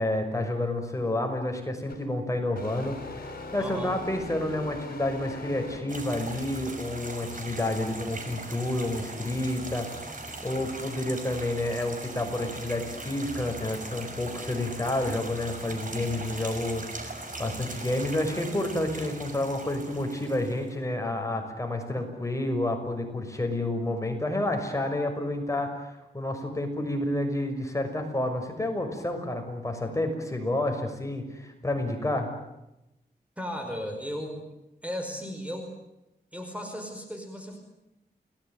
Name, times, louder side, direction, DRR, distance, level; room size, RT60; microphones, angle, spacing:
voice 1, 0.0-9.9 10.4-32.3, left 1 dB, 15° left, 4 dB, 6.1 m, -30 dB
sound 1, 1.9-2.1 2.5-6.2, left 2 dB, 60° left, 6.7 m, -40 dB
voice 2, 3.6-3.9 33.4-34.5 34.8-35.7 36.3-37.6, equal, 5° right, 4 dB, 5.1 m, -35 dB
sound 2, 5.9-20.7, right 2 dB, 50° right, 6.1 m, -40 dB
30.0 x 19.5 x 9.3 m, 0.91 s
wide cardioid pair, 85°, 17 cm